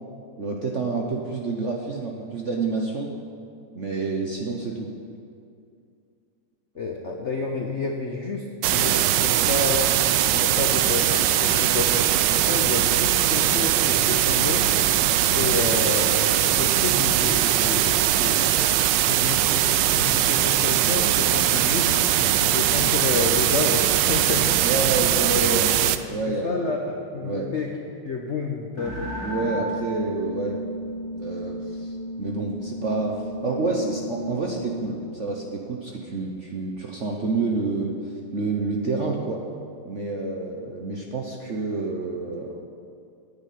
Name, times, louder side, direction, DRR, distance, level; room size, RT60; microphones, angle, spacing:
voice 1, 0.4-3.1 3.7-4.9 24.6-25.7 26.1-26.7 27.2-27.5 29.2-30.6 31.1-33.2 33.4-38.0 38.3-39.4 39.8-42.6, right 3 dB, 55° right, 0 dB, 0.8 m, -28 dB
voice 2, 6.8-14.7 15.1-18.5 19.0-24.7 25.8-26.0 26.3-27.7 28.0-29.1, left 3 dB, 60° left, 2 dB, 0.7 m, -30 dB
sound 1, 8.6-26.0, right 12 dB, 75° right, 1.1 m, -21 dB
sound 2, 28.8-35.1, equal, 35° left, 2.3 m, -34 dB
9.6 x 7.4 x 9.1 m, 2.4 s
omnidirectional pair, 2.3 m